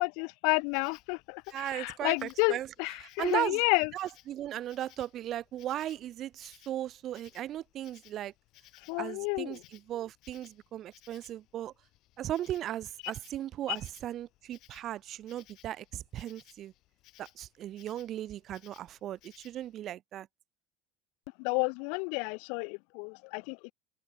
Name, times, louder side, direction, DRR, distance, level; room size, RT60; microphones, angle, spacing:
voice 1, 0.0-3.9 8.9-9.6 13.7-13.8 21.4-23.7, left 40 dB or more, 65° left, 0.5 m, -31 dB
Insect, 0.6-19.7, left 17 dB, 50° left, 3.0 m, -62 dB
voice 2, 1.5-2.7 3.2-3.6 3.9-8.3 9.0-11.7 12.2-16.7 17.2-20.3, right 12 dB, 40° right, 0.3 m, -37 dB
cardioid pair, 150°, 0 cm